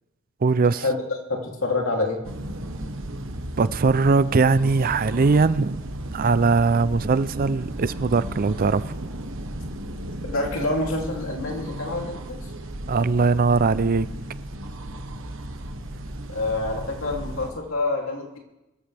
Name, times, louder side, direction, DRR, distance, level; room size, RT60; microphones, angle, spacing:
voice 1, 0.4-0.8 3.6-9.1 12.9-14.1, right 4 dB, 45° right, 0.5 m, -21 dB
voice 2, 1.3-2.2 10.3-12.5 16.3-18.4, left 2 dB, 75° left, 3.0 m, -27 dB
sound 1, 2.2-17.5, right 1 dB, 70° right, 1.3 m, -35 dB
24.0 x 14.0 x 3.4 m
head